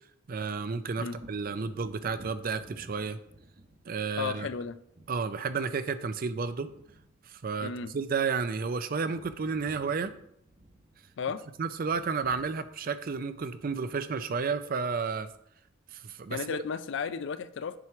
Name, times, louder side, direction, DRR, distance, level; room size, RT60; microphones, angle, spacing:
voice 1, 0.3-3.2 3.9-4.5 5.1-6.7 7.3-10.1 11.6-15.3 15.9-16.6, right 5 dB, 45° right, 12 dB, 0.4 m, -32 dB
Wind / Thunder, 1.1-8.7 8.9-16.2 16.6-16.8, right 1 dB, 30° right, 1.0 m, -56 dB
voice 2, 4.2-4.8 7.6-7.9 11.2-11.4 16.3-17.8, left 5 dB, 60° left, 13 dB, 0.4 m, -34 dB
7.6 x 3.0 x 5.8 m, 0.73 s
head